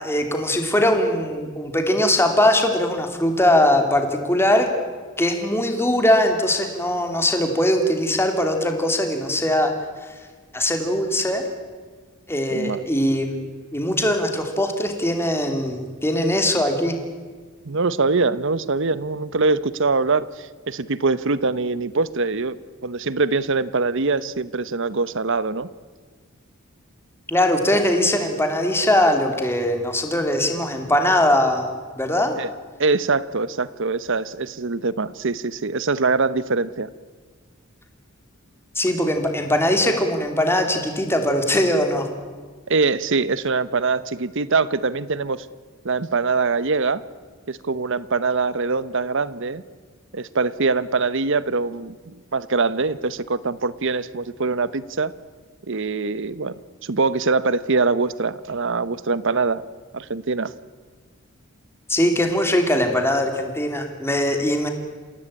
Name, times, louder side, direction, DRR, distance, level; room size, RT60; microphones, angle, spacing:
voice 1, 0.0-4.7 5.2-9.7 10.5-11.4 12.3-13.4 13.7-16.9 27.3-31.7 32.0-32.4 38.7-42.1 61.9-64.7, left 1 dB, 10° left, 5 dB, 2.8 m, -21 dB
voice 2, 12.5-12.8 17.6-22.6 22.8-25.7 32.4-32.5 32.8-36.9 42.7-45.5 45.8-47.0 47.5-49.6 50.1-55.1 55.7-56.5 56.8-59.6 59.9-60.5, right 4 dB, 60° right, 17 dB, 0.9 m, -23 dB
28.5 x 16.5 x 8.8 m, 1.5 s
head